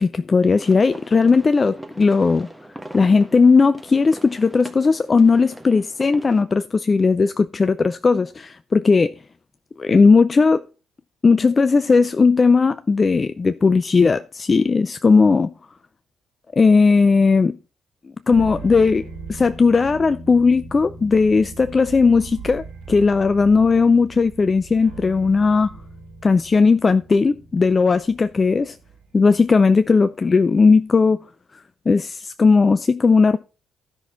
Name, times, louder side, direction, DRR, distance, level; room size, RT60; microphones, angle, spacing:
voice 1, 0.0-2.5 2.9-9.1 9.8-10.6 11.2-15.5 16.5-17.5 18.3-19.0 19.3-25.8 26.2-28.8 29.1-31.2 31.9-33.4, left 4 dB, 35° left, 0.4 m, -17 dB
sound 1, 0.6-6.4, right 1 dB, 5° right, 1.5 m, -40 dB
sound 2, 18.2-29.6, right 4 dB, 75° right, 4.6 m, -39 dB
13.5 x 6.0 x 4.4 m
figure-of-eight pair, 45°, 0 cm